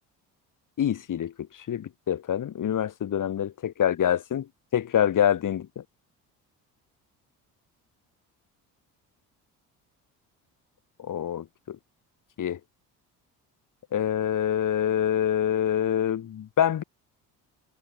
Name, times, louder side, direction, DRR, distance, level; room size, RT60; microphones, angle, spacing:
voice 1, 0.8-5.8 11.0-11.8 12.4-12.6 13.9-16.8, left 10 dB, 55° left, 6.9 m, -26 dB
cardioid pair, 90°, 38 cm